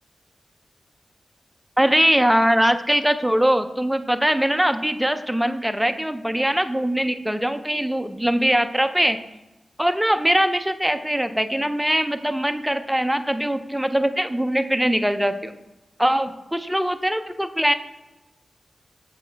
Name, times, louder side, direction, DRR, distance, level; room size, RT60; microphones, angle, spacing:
voice 1, 1.8-9.2 9.8-15.5 16.0-17.7, equal, 5° right, 9 dB, 0.4 m, -21 dB
7.2 x 4.3 x 4.4 m, 1.0 s
wide cardioid pair, 100°, 0 cm